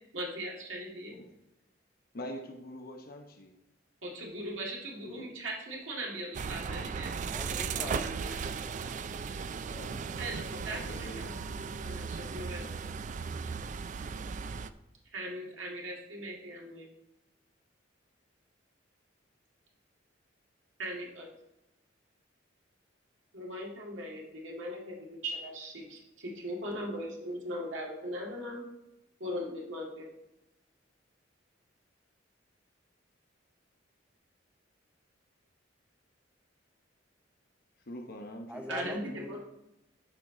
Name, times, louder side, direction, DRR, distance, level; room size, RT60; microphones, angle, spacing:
voice 1, 0.1-1.1 4.0-7.1 7.5-8.7 10.2-12.8 15.1-16.9 20.8-21.3 23.3-28.6 29.2-30.1 38.7-39.4, equal, 75° right, -2 dB, 2.0 m, -39 dB
voice 2, 2.1-3.5 5.0-5.3 6.6-7.0 7.7-8.4 9.6-10.0 10.6-11.3 37.8-38.8, equal, 50° left, 4 dB, 0.9 m, -45 dB
sound 1, 6.3-14.7, right 5 dB, 40° right, 0.3 m, -37 dB
voice 3, 7.2-9.4 38.5-39.4, equal, 5° right, 6 dB, 0.8 m, -44 dB
12.5 x 4.7 x 3.8 m, 0.90 s
head